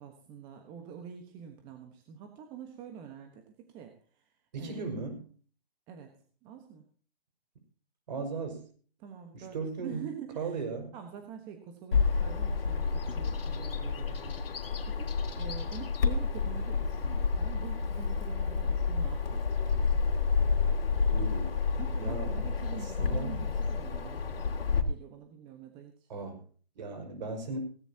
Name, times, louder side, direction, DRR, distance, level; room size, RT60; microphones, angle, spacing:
voice 1, 0.0-4.9 5.9-6.2 6.4-6.9 9.0-9.6 9.8-10.5 10.9-19.5 21.8-24.5 24.9-26.1, right 8 dB, 15° right, 5 dB, 1.3 m, -46 dB
voice 2, 4.5-5.3 8.1-8.7 9.3-10.1 10.4-10.9 21.1-21.6 22.0-22.3 22.8-23.5 26.1-26.4 26.8-27.6, right 4 dB, 45° right, 6 dB, 5.8 m, -37 dB
Bird vocalization bird call bird song, 11.9-24.8, left 5 dB, 65° left, 3.2 m, -30 dB
17.5 x 16.5 x 2.9 m, 0.41 s
hypercardioid pair, 160°, 31 cm